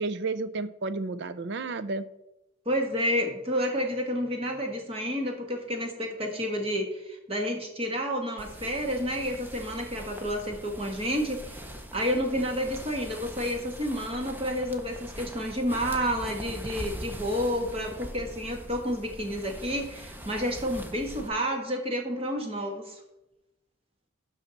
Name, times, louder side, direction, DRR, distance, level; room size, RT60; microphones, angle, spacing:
voice 1, 0.0-2.1, right 3 dB, 55° right, 13 dB, 0.5 m, -31 dB
voice 2, 2.6-23.0, equal, 30° right, 3 dB, 1.5 m, -30 dB
sound 1, 8.4-21.3, equal, 10° right, 0.6 m, -42 dB
12.0 x 5.6 x 4.0 m, 0.90 s
head